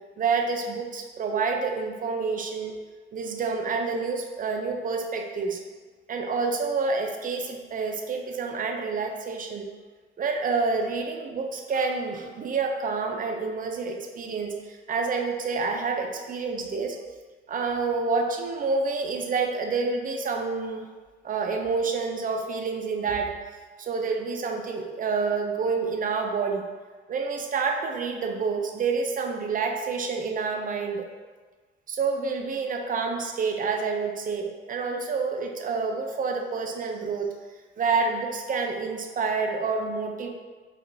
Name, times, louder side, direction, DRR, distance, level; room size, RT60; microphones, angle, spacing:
voice 1, 0.2-2.8 3.1-5.6 6.1-9.7 10.2-17.0 17.5-20.9 21.2-23.3 23.8-26.6 27.1-31.1 31.9-37.3 37.8-40.3, right 4 dB, 45° right, 3 dB, 0.5 m, -28 dB
5.0 x 2.5 x 2.6 m, 1.4 s
cardioid pair, 90°, 20 cm